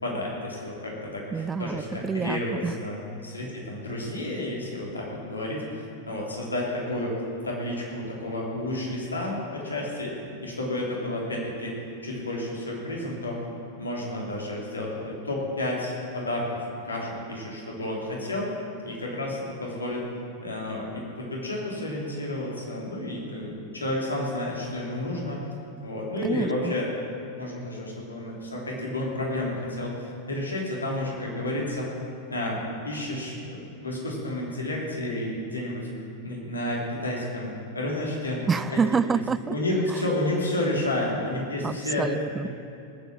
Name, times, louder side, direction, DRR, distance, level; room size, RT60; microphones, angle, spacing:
voice 1, 0.0-7.1 7.4-11.8 12.0-13.4 13.8-16.6 16.8-18.5 18.8-20.1 20.4-25.4 25.8-26.9 27.3-31.9 32.3-35.9 36.2-38.4 38.7-38.8 39.5-42.1 42.4-42.5, left 1 dB, 80° left, -3 dB, 3.2 m, -31 dB
voice 2, 1.3-2.7 26.2-26.8 38.5-39.6 41.6-42.5, right 5 dB, 15° right, 17 dB, 0.3 m, -27 dB
18.5 x 8.0 x 7.4 m, 2.8 s
figure-of-eight pair, 90°, 0 cm